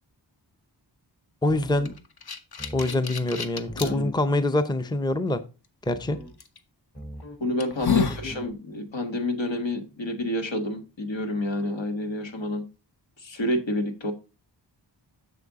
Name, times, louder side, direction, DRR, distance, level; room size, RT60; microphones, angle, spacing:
voice 1, 1.4-1.9 2.7-5.4 5.9-6.2 7.8-8.0, left 2 dB, 10° left, 0.6 m, -25 dB
sound 1, 1.5-2.0 2.6-3.1 3.7-4.2 5.8-6.4 6.9-7.5 8.0-8.5, equal, 35° left, 2.7 m, -41 dB
sound 2, 1.8-3.9 4.6-4.7 6.4-6.6 7.1-7.2 7.6-8.3, left 7 dB, 55° left, 0.9 m, -29 dB
voice 2, 3.8-4.1 7.4-12.6 13.2-14.1, left 1 dB, 80° left, 1.5 m, -29 dB
6.9 x 6.8 x 3.6 m
wide cardioid pair, 75°, 44 cm